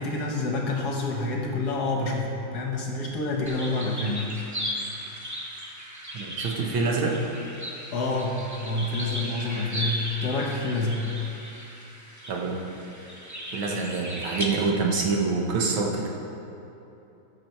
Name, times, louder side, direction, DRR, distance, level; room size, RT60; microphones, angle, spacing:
voice 1, 0.0-4.3 7.9-11.1, left 2 dB, 55° left, 0 dB, 1.4 m, -28 dB
sound 1, 3.4-14.4, equal, 20° right, 0.4 m, -36 dB
voice 2, 6.1-7.2 12.3-12.6 13.5-16.1, right 4 dB, 75° right, -1 dB, 1.9 m, -26 dB
14.0 x 6.2 x 4.5 m, 2.9 s
omnidirectional pair, 2.3 m